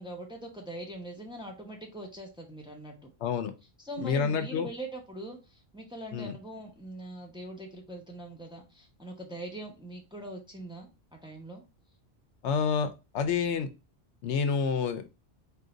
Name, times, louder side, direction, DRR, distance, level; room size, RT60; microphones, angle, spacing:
voice 1, 0.0-3.1 3.8-11.6, right 1 dB, 5° right, 0 dB, 0.8 m, -42 dB
voice 2, 3.2-3.5 4.0-4.7 6.1-6.3 12.4-13.7 14.2-15.1, left 6 dB, 80° left, 9 dB, 0.9 m, -28 dB
3.8 x 2.8 x 3.8 m, 0.28 s
omnidirectional pair, 1.2 m